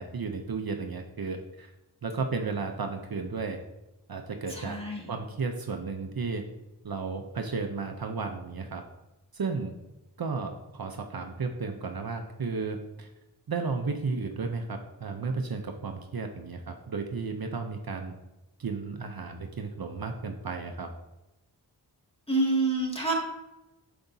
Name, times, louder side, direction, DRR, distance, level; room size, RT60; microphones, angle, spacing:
voice 1, 0.0-1.7 2.0-3.6 4.1-4.8 5.1-6.4 6.8-8.8 9.3-9.7 10.2-13.1 13.5-18.1 18.6-20.9, right 4 dB, 55° right, 4 dB, 0.7 m, -33 dB
voice 2, 4.5-5.1 22.3-23.1, right 2 dB, 15° left, -2 dB, 2.1 m, -27 dB
8.5 x 7.0 x 2.7 m, 0.98 s
wide cardioid pair, 50°, 43 cm